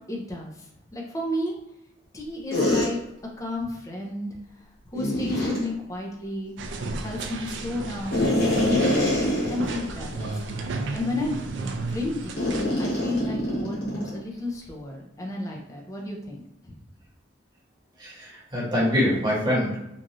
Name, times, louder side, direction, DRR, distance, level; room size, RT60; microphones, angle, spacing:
voice 1, 0.1-0.5 0.9-1.6 2.1-3.0 3.4-4.4 4.9-6.5 6.8-8.9 9.5-10.3 10.9-11.4 11.9-12.5 12.8-16.7, left 2 dB, 15° left, -1 dB, 0.5 m, -32 dB
sound 1, 2.5-2.9 4.9-5.6 8.1-9.8 10.2-10.3 10.9-11.1 12.4-14.2, left 1 dB, 55° left, 1.1 m, -24 dB
sound 2, 6.6-12.6, right 3 dB, 70° right, 0.4 m, -33 dB
voice 2, 18.0-19.8, left 1 dB, 25° right, -6 dB, 1.1 m, -24 dB
3.0 x 2.4 x 2.6 m, 0.85 s
head